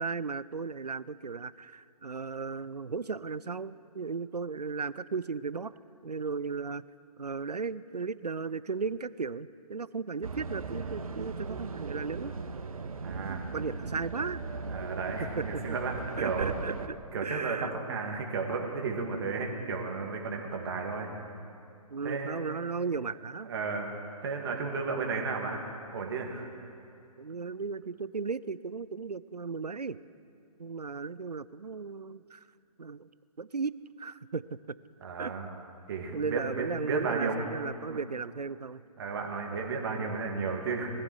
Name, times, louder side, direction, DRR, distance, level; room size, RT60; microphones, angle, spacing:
voice 1, 0.0-5.7 6.0-6.8 7.2-12.3 13.5-14.4 15.2-15.8 16.2-17.0 17.2-17.7 21.9-23.5 27.2-30.0 30.6-32.4 32.8-33.1 33.4-34.7 35.2-35.3 36.1-38.8, right 5 dB, 85° right, 18 dB, 0.5 m, -35 dB
sound 1, 10.2-16.9, right 4 dB, 60° right, 1.0 m, -38 dB
voice 2, 13.0-13.6 14.7-16.5 17.1-21.1 22.0-22.4 23.4-25.6 25.9-26.5 35.0-35.5 35.9-37.4 37.9-38.0 39.0-40.9, right 4 dB, 40° right, 1 dB, 2.4 m, -33 dB
21.0 x 14.0 x 4.8 m, 2.6 s
figure-of-eight pair, 140°, 20 cm